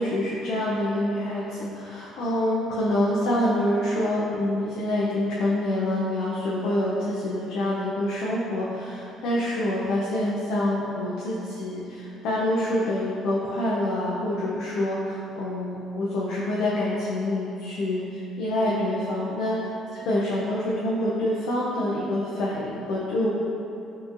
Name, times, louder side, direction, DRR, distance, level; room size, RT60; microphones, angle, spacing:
voice 1, 0.0-19.6 20.1-23.3, left 1 dB, 75° left, -6 dB, 0.5 m, -26 dB
4.3 x 3.0 x 2.5 m, 2.8 s
cardioid pair, 165°, 0 cm